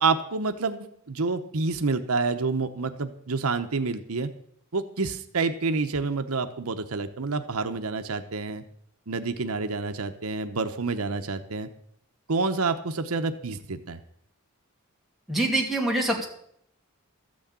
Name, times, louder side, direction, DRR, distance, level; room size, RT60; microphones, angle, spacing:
voice 1, 0.0-4.3 4.7-8.6 9.1-11.7 12.3-14.0, right 4 dB, 80° right, 8 dB, 0.9 m, -28 dB
voice 2, 15.3-16.3, right 2 dB, ahead, -2 dB, 2.4 m, -25 dB
13.5 x 6.3 x 8.8 m, 0.68 s
head